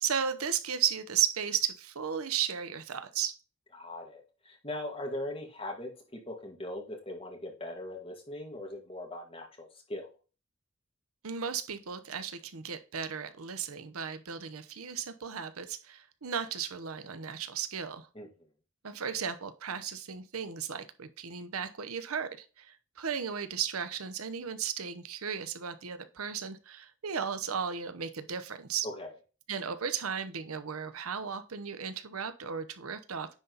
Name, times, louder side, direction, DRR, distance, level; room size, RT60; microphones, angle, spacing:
voice 1, 0.0-3.4 11.2-18.1 18.8-28.9 29.5-33.3, right 7 dB, 90° right, 11 dB, 0.8 m, -35 dB
voice 2, 3.7-10.1 18.2-18.3 28.8-29.1, left 1 dB, 25° left, 1 dB, 2.0 m, -40 dB
9.9 x 4.0 x 3.9 m, 0.33 s
head